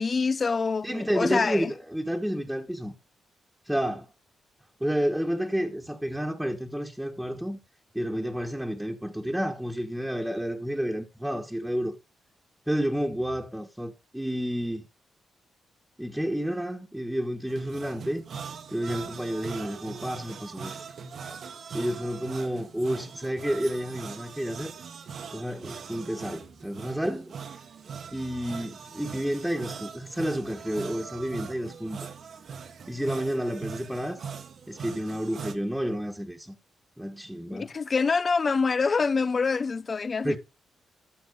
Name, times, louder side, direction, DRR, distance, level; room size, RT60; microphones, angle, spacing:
voice 1, 0.0-1.7 37.5-40.4, left 4 dB, 40° left, 0.7 m, -26 dB
voice 2, 0.8-2.9 3.7-4.1 4.8-7.6 7.9-12.0 12.7-14.8 16.0-18.2 18.7-20.8 21.7-24.7 25.3-27.3 28.1-32.1 32.9-34.2 34.7-36.5 37.0-37.7 40.2-40.4, equal, 5° right, 1.6 m, -30 dB
sound 1, 17.5-35.6, right 6 dB, 65° right, 1.5 m, -41 dB
15.0 x 6.0 x 4.0 m
cardioid pair, 70°, 0 cm